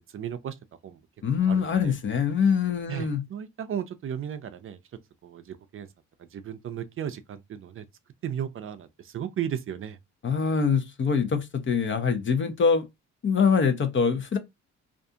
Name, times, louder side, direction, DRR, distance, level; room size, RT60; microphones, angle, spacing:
voice 1, 0.1-0.6 0.8-1.0 1.4-2.0 2.9-4.8 5.2-5.9 6.2-7.8 8.2-10.0, right 9 dB, 45° right, 0.4 m, -35 dB
voice 2, 1.2-3.2 10.2-12.8 13.2-14.4, left 6 dB, 40° left, 0.6 m, -24 dB
2.5 x 2.3 x 2.7 m
cardioid pair, 90°, 30 cm